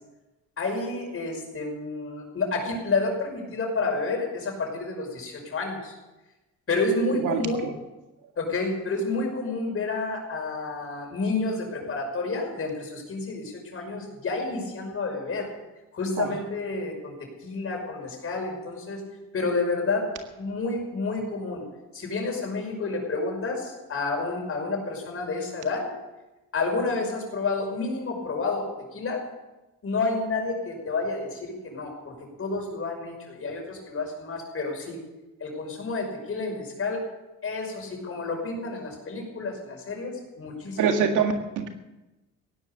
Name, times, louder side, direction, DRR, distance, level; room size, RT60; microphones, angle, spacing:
voice 1, 0.6-5.9 6.7-7.6 8.4-15.5 15.9-17.1 17.4-19.0 19.3-20.0 20.4-21.7 21.9-25.9 26.5-29.2 29.8-35.0 35.4-37.0 37.4-40.8, left 3 dB, 45° left, 2 dB, 5.7 m, -30 dB
voice 2, 7.2-7.7 16.2-16.3 40.8-41.7, right 6 dB, 90° right, 5 dB, 1.9 m, -25 dB
16.5 x 11.0 x 6.9 m, 1.0 s
cardioid pair, 90°, 30 cm